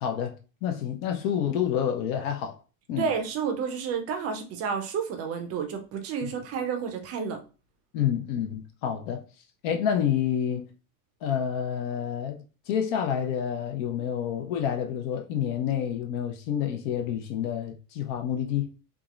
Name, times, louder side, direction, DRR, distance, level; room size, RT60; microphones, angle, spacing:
voice 1, 0.0-2.6 2.9-3.1 7.9-9.2 9.6-10.7 11.2-12.4 12.7-18.7, left 9 dB, 50° left, 0.6 m, -28 dB
voice 2, 3.0-7.4, right 6 dB, 30° right, 0.5 m, -30 dB
3.5 x 2.0 x 2.3 m
hypercardioid pair, 115°, 49 cm